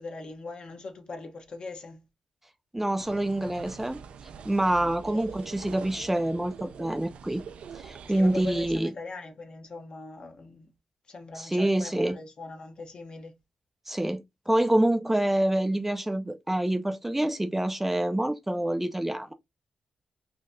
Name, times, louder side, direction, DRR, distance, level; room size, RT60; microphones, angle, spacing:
voice 1, 0.0-2.0 4.8-5.5 8.1-10.7 11.1-13.3, left 3 dB, 50° left, 1.0 m, -41 dB
voice 2, 2.7-4.0 4.4-7.4 7.7-8.9 11.4-12.2 13.9-19.3, right 1 dB, 10° right, 0.4 m, -26 dB
sound 1, 3.0-8.8, right 6 dB, 75° right, 0.4 m, -44 dB
3.8 x 2.7 x 2.5 m
cardioid pair, 70°, 2 cm